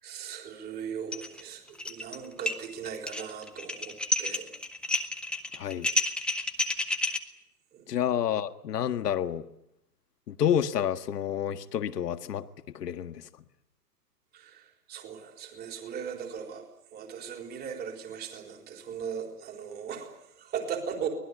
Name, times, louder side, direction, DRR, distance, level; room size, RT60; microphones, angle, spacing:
voice 1, 0.0-4.5 7.7-7.8 14.3-21.1, right 7 dB, 20° right, 3 dB, 4.1 m, -38 dB
sound 1, 1.1-1.4 1.7-2.2 2.5-7.2, left 2 dB, ahead, 1.2 m, -30 dB
voice 2, 5.5-5.9 7.9-9.4 10.3-12.4 12.7-13.2, left 9 dB, 70° left, 9 dB, 1.7 m, -29 dB
24.5 x 19.5 x 9.5 m, 0.79 s
hypercardioid pair, 145°, 49 cm